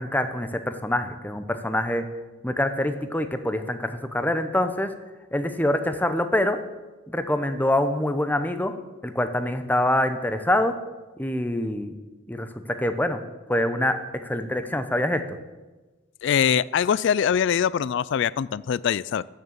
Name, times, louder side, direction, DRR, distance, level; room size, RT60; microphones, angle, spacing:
voice 1, 0.0-2.1 2.4-4.9 5.3-6.6 7.1-8.7 9.0-10.8 11.2-11.9 12.3-13.2 13.5-15.4, left 1 dB, 10° left, 9 dB, 0.8 m, -25 dB
voice 2, 16.2-19.2, left 8 dB, 60° left, 20 dB, 0.3 m, -23 dB
13.5 x 6.7 x 8.8 m, 1.2 s
head